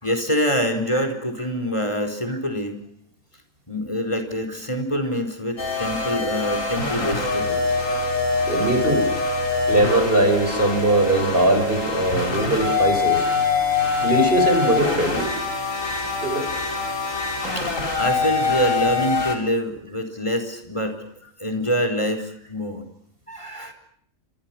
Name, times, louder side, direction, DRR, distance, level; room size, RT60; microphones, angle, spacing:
voice 1, 0.0-2.8 3.7-7.7 17.5-21.1 21.4-22.8 23.3-23.7, equal, 20° left, 7 dB, 4.5 m, -25 dB
sound 1, 5.6-19.4, left 4 dB, 80° left, 4.6 m, -24 dB
voice 2, 8.5-9.1 9.7-13.3 14.0-15.3 16.2-16.5, right 1 dB, 45° right, 6 dB, 5.4 m, -20 dB
30.0 x 25.5 x 6.0 m, 0.64 s
omnidirectional pair, 1.4 m